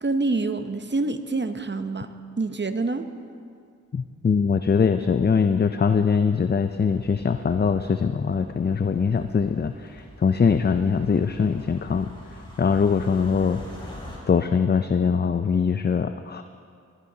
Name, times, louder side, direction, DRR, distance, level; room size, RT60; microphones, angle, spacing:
voice 1, 0.0-3.1, right 3 dB, 35° right, 9 dB, 0.7 m, -27 dB
voice 2, 3.9-13.9 14.3-16.4, left 6 dB, 35° left, 9 dB, 0.4 m, -22 dB
sound 1, 6.6-14.2, equal, 15° left, 3.4 m, -45 dB
16.5 x 13.0 x 2.8 m, 2.2 s
cardioid pair, 45°, 31 cm